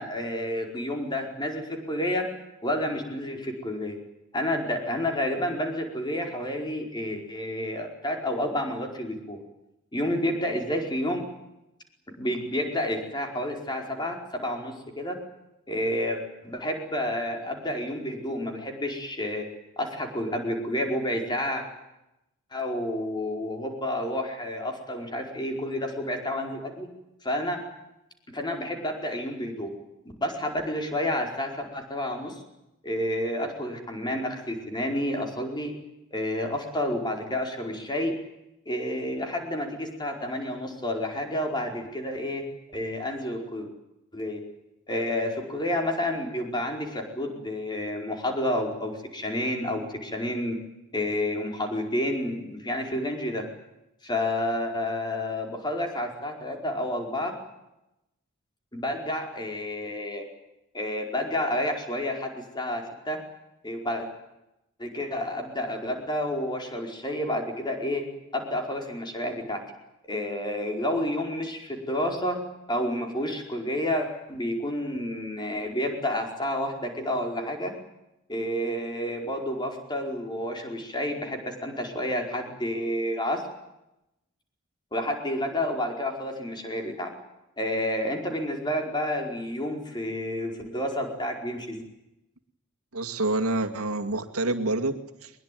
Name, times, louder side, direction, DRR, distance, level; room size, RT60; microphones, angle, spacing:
voice 1, 0.0-2.2 2.6-3.9 4.3-9.4 9.9-11.2 12.2-15.1 15.7-19.4 19.8-21.6 22.5-26.9 27.2-27.6 28.3-29.7 30.2-32.4 32.8-35.7 36.1-38.1 38.6-42.4 42.7-43.7 44.1-44.4 44.9-50.6 50.9-53.5 54.0-57.3 58.7-60.2 60.7-63.2 63.6-64.1 64.8-68.0 68.3-69.6 70.1-72.4 72.7-77.7 78.3-83.4 84.9-87.1 87.6-91.8, left 1 dB, 20° left, 3 dB, 4.9 m, -30 dB
voice 2, 92.9-95.3, right 2 dB, 85° right, 6 dB, 2.3 m, -27 dB
22.0 x 21.5 x 9.4 m, 0.90 s
head